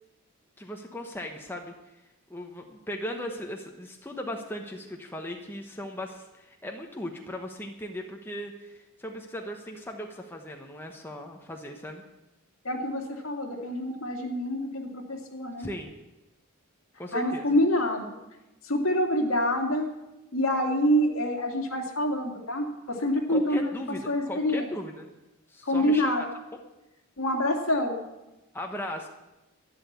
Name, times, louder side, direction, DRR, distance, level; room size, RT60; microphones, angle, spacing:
voice 1, 0.6-1.7 2.3-12.0 15.6-15.9 17.0-17.6 23.3-25.1 25.5-26.2 28.5-29.1, equal, 10° left, 2 dB, 1.0 m, -37 dB
voice 2, 12.6-15.7 17.1-18.2 18.7-19.9 20.3-23.6 24.1-24.6 25.6-26.2 27.2-28.0, equal, 65° left, 2 dB, 2.4 m, -26 dB
12.0 x 10.5 x 8.1 m, 0.99 s
head